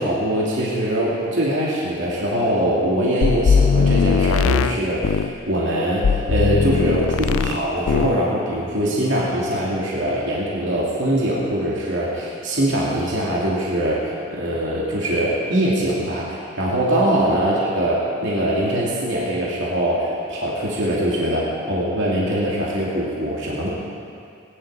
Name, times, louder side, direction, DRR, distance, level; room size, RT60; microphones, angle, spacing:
voice 1, 0.0-14.0 14.3-23.7, right 1 dB, 65° right, -6 dB, 2.6 m, -22 dB
sound 1, 3.2-5.4 6.0-7.6 7.9-8.2, left 5 dB, 85° left, 0.4 m, -19 dB
20.5 x 11.0 x 4.9 m, 2.4 s
head